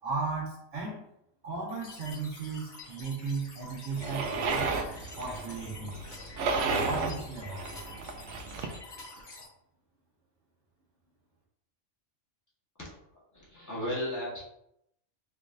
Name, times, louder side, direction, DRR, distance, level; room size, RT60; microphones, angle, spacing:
voice 1, 0.0-1.0 1.4-4.7 5.2-6.0 6.8-7.7, right 4 dB, 55° right, -4 dB, 1.4 m, -35 dB
sound 1, 1.7-9.5, left 3 dB, 45° left, 0.9 m, -48 dB
sound 2, 4.0-8.8, right 4 dB, 75° right, 0.9 m, -33 dB
voice 2, 13.3-14.4, left 1 dB, 15° left, -6 dB, 1.3 m, -35 dB
4.8 x 3.3 x 2.5 m, 0.78 s
omnidirectional pair, 1.2 m